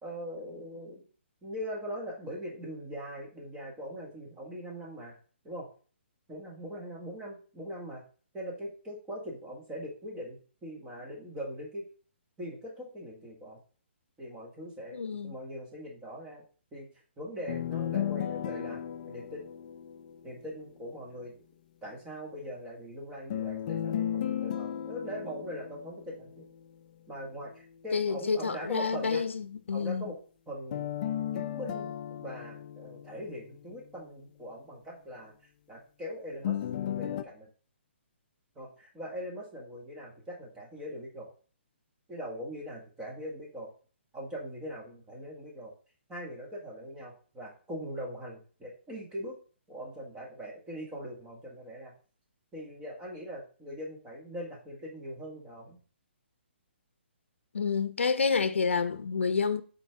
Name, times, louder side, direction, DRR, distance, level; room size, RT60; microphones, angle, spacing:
voice 1, 0.0-1.0 1.4-5.1 5.4-5.7 6.3-8.0 8.3-11.9 12.4-13.6 14.2-16.4 16.7-16.9 17.2-19.5 20.2-21.3 21.8-26.4 27.1-29.2 29.7-30.2 30.5-30.9 31.3-31.9 32.2-35.3 35.7-36.6 37.0-37.5 38.6-41.3 42.1-43.7 44.1-45.7 46.1-49.4 49.7-51.9 52.5-55.8, equal, 10° right, 1.8 m, -41 dB
voice 2, 14.9-15.4 27.9-30.0 57.5-59.6, left 5 dB, 90° left, 0.6 m, -29 dB
sound 1, 17.5-20.5 23.3-26.5 30.7-33.8 36.4-37.2, left 10 dB, 40° left, 0.5 m, -35 dB
7.1 x 4.4 x 3.6 m
hypercardioid pair, 155°, 6 cm